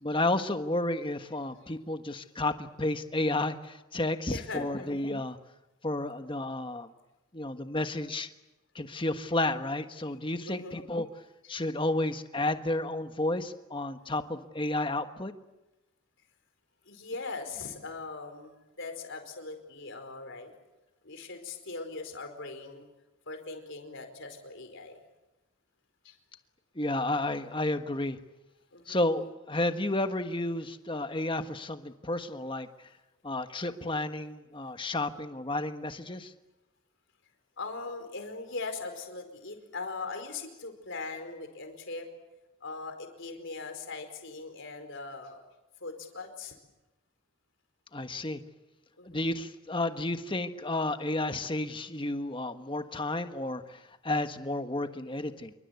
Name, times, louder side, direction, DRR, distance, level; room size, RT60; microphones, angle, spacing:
voice 1, 0.0-5.4 5.8-6.9 7.3-8.3 8.7-11.1 11.5-15.3 26.7-28.2 28.9-32.7 33.2-36.3 47.9-48.4 49.0-55.5, left 2 dB, 25° left, 8 dB, 1.3 m, -31 dB
voice 2, 4.3-4.9 10.5-10.8 16.8-20.5 21.0-22.8 23.3-25.0 26.0-26.1 28.7-29.0 37.6-42.1 42.6-45.4 45.8-46.5 49.0-49.2, left 3 dB, 55° left, 6 dB, 4.8 m, -40 dB
27.0 x 24.0 x 8.3 m, 1.0 s
head